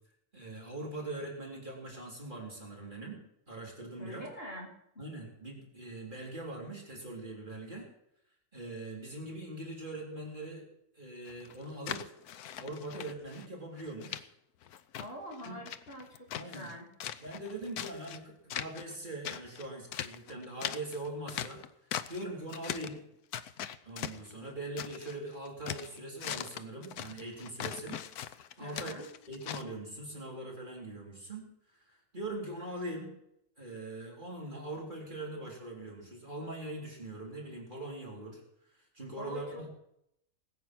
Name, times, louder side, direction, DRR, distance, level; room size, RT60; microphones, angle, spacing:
voice 1, 0.3-3.2 3.5-4.3 5.0-7.9 8.5-10.7 10.9-12.1 12.6-14.3 15.4-15.6 16.3-16.7 17.2-21.6 22.1-23.0 23.9-28.9 29.3-31.4 31.7-33.1 33.6-38.4 38.9-39.7, right 2 dB, 30° right, -3 dB, 3.8 m, -42 dB
voice 2, 4.0-5.0 15.0-16.9 28.6-29.1 39.2-39.7, equal, 40° left, -2 dB, 3.5 m, -45 dB
sound 1, 11.3-13.5 13.8-14.2 14.6-16.7 17.0-18.2 18.5-19.0 19.2-22.2 22.5-23.0 23.3-25.2 25.5-29.6, left 10 dB, 85° left, 1.2 m, -40 dB
19.5 x 8.6 x 6.1 m, 0.78 s
omnidirectional pair, 1.6 m